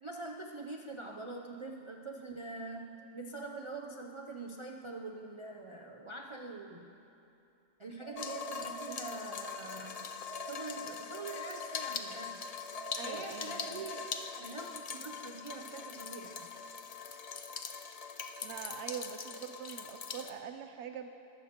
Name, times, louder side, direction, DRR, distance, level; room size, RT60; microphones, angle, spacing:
voice 1, 0.0-7.0 7.8-10.1 10.4-12.5 13.0-16.5, right 3 dB, 35° right, 0 dB, 0.5 m, -44 dB
sound 1, 8.0-9.8 10.3-12.2 12.7-14.6, right 2 dB, 55° right, 4.0 m, -48 dB
sound 2, 8.2-20.3, left 6 dB, 45° left, 0.5 m, -42 dB
voice 2, 12.9-13.8 18.4-21.1, right 8 dB, 80° right, 7 dB, 0.9 m, -43 dB
21.5 x 13.5 x 2.9 m, 2.7 s
omnidirectional pair, 1.2 m